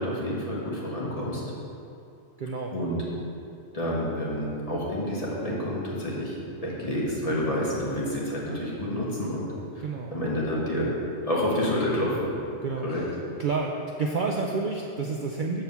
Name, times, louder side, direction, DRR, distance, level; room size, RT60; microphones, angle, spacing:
voice 1, 0.0-1.4 2.7-3.0 3.7-9.5 10.1-12.3 12.8-13.0, equal, 30° left, -6 dB, 1.6 m, -29 dB
voice 2, 2.4-2.7 9.8-10.2 12.6-13.0 13.4-15.6, right 4 dB, 55° right, 0 dB, 0.6 m, -29 dB
7.2 x 4.5 x 6.8 m, 2.6 s
omnidirectional pair, 1.2 m